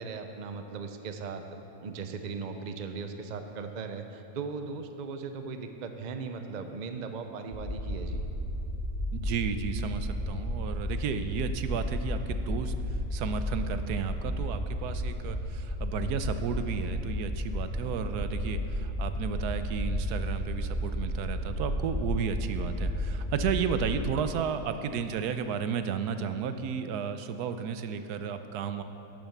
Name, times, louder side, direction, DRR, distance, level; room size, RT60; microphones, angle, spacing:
voice 1, 0.0-1.4 1.8-8.2, right 4 dB, 45° right, 6 dB, 0.5 m, -38 dB
sound 1, 7.5-24.0, equal, 10° left, 3.3 m, -33 dB
voice 2, 9.1-12.7 13.1-28.8, right 7 dB, 85° right, 9 dB, 1.2 m, -33 dB
11.5 x 7.3 x 7.1 m, 3.0 s
omnidirectional pair, 1.7 m